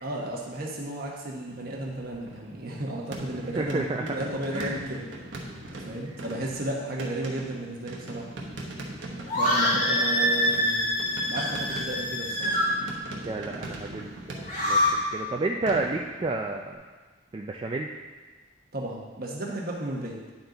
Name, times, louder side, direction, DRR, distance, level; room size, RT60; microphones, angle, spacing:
voice 1, 0.0-5.1 5.7-8.3 9.3-10.9 11.3-12.6 18.7-20.1, right 1 dB, 55° right, -2 dB, 1.2 m, -33 dB
sound 1, 1.5-2.7 3.1-16.7, right 1 dB, 80° right, 1.1 m, -41 dB
voice 2, 3.4-4.0 4.5-4.8 6.1-6.2 13.3-16.8 17.3-17.9, right 3 dB, 25° right, 0 dB, 0.3 m, -31 dB
sound 2, 9.3-12.7 14.3-14.9, left 1 dB, 40° left, 2.0 m, -25 dB
9.4 x 4.4 x 3.9 m, 1.4 s
head